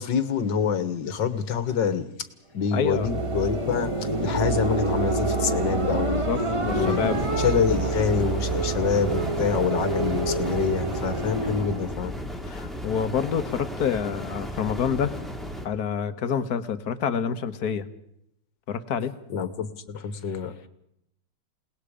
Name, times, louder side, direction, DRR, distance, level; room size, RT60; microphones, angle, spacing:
voice 1, 0.0-2.1 2.5-6.3 6.7-7.0 7.4-12.1 19.3-20.5, left 7 dB, 85° left, 11 dB, 2.0 m, -26 dB
sound 1, 2.6-12.0, right 2 dB, 20° right, 1.4 m, -27 dB
voice 2, 2.7-3.1 6.1-7.2 9.4-9.5 12.4-15.2 15.6-17.9 18.7-19.1, left 7 dB, 60° left, 11 dB, 1.6 m, -27 dB
sound 2, 6.7-15.7, equal, ahead, 2.2 m, -35 dB
29.0 x 19.0 x 5.1 m, 0.77 s
omnidirectional pair, 1.9 m